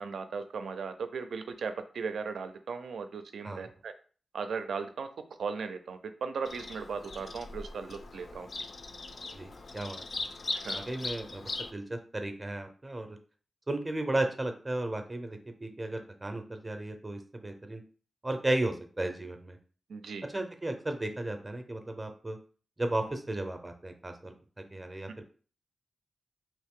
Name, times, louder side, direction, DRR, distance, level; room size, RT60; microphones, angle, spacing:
voice 1, 0.0-3.9 4.3-5.1 5.4-8.5 10.5-10.8 19.9-20.2, right 5 dB, 85° right, 8 dB, 0.4 m, -37 dB
Bird vocalization bird call bird song, 6.5-11.7, left 3 dB, 50° left, 0.3 m, -40 dB
voice 2, 9.3-10.0 10.7-13.2 13.7-17.8 18.2-19.6 20.2-22.4 22.8-24.3 24.7-25.2, right 2 dB, 20° right, 6 dB, 0.5 m, -34 dB
2.9 x 2.7 x 3.6 m, 0.41 s
wide cardioid pair, 140°, 0 cm